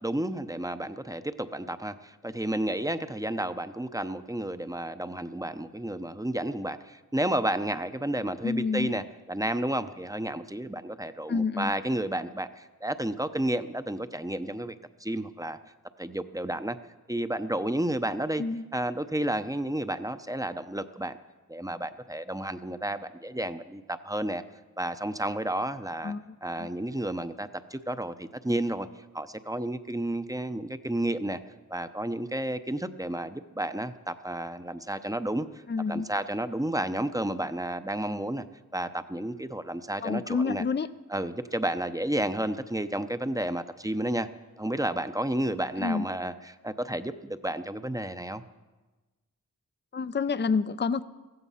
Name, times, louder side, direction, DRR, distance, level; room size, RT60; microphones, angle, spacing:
voice 1, 0.0-14.7 15.0-15.6 16.0-16.8 17.1-18.4 18.7-21.2 21.5-24.4 24.8-26.1 26.4-28.9 29.1-31.4 31.7-35.5 35.9-38.4 38.7-40.6 41.1-44.3 44.6-48.4, right 1 dB, 10° right, 11 dB, 0.8 m, -31 dB
voice 2, 8.4-8.9 11.3-11.7 18.4-18.7 26.0-26.7 35.7-36.1 40.0-40.9 45.8-46.0 49.9-51.0, left 4 dB, 30° left, 14 dB, 0.6 m, -28 dB
15.5 x 15.0 x 5.7 m, 1.2 s
cardioid pair, 55°, 35 cm